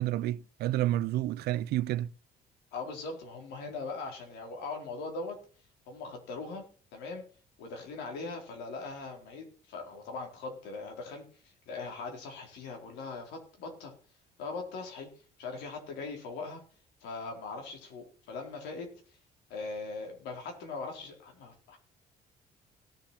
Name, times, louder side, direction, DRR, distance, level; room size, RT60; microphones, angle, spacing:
voice 1, 0.0-2.1, right 14 dB, 70° right, 0.4 m, -30 dB
voice 2, 2.7-5.4 5.9-6.6 6.9-7.2 7.6-13.9 14.4-15.1 15.4-16.6 17.0-18.9 19.5-21.8, left 3 dB, 85° left, 4.2 m, -40 dB
17.5 x 7.2 x 4.3 m
cardioid pair, 110°, 17 cm